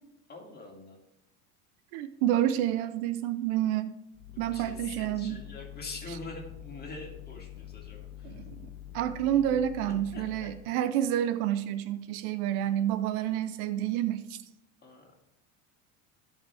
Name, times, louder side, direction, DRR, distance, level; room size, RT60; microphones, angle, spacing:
voice 1, 0.3-1.0 4.5-8.4 9.9-10.5 14.8-15.1, left 2 dB, 20° left, -1 dB, 2.7 m, -44 dB
voice 2, 1.9-3.9 4.4-5.4 8.2-14.4, right 11 dB, 70° right, 13 dB, 0.8 m, -29 dB
sound 1, 4.1-10.7, left 12 dB, 60° left, 0.7 m, -45 dB
16.5 x 5.6 x 3.5 m, 0.87 s
supercardioid pair, 110°, 44 cm